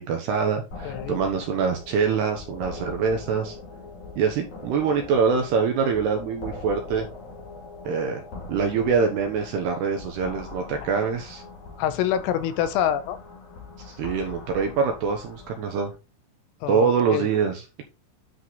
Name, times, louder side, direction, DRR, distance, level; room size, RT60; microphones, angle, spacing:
voice 1, 0.0-3.6 4.2-7.1 7.8-8.2 8.5-11.4 13.8-15.9 16.7-17.8, right 6 dB, 75° right, 2.5 m, -24 dB
sound 1, 0.7-15.9, left 3 dB, 45° left, 3.0 m, -41 dB
voice 2, 0.9-1.2 11.8-13.2 16.6-17.3, left 10 dB, 85° left, 3.5 m, -26 dB
10.0 x 4.8 x 4.0 m
omnidirectional pair, 6.0 m